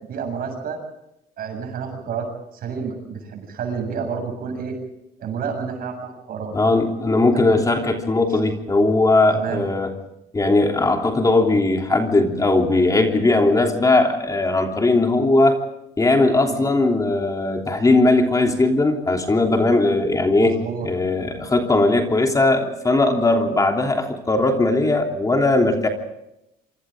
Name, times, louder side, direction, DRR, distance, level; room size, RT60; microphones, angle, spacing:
voice 1, 0.1-0.8 1.4-4.8 5.2-6.5 7.3-7.6 9.3-9.7 16.5-16.7 20.4-20.9, right 6 dB, 60° right, 4 dB, 7.6 m, -30 dB
voice 2, 6.5-9.9 10.3-15.6 16.0-25.9, left 2 dB, 20° left, 3 dB, 3.3 m, -19 dB
27.5 x 25.5 x 3.8 m, 0.84 s
cardioid pair, 110°, 17 cm